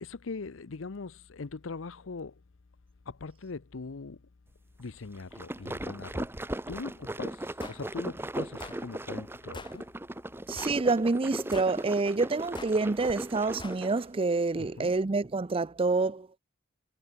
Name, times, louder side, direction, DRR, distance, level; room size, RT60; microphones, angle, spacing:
voice 1, 0.0-2.4 3.1-4.2 4.8-9.9 14.6-14.9, left 4 dB, 80° left, 0.7 m, -41 dB
sound 1, 5.1-14.1, right 1 dB, 10° right, 1.0 m, -38 dB
sound 2, 7.6-7.8 8.6-8.8 9.5-9.8 10.6-10.8 11.5-11.8 12.5-12.8 13.6-13.8, left 3 dB, 25° left, 1.0 m, -44 dB
voice 2, 10.5-16.3, right 3 dB, 30° right, 0.5 m, -27 dB
head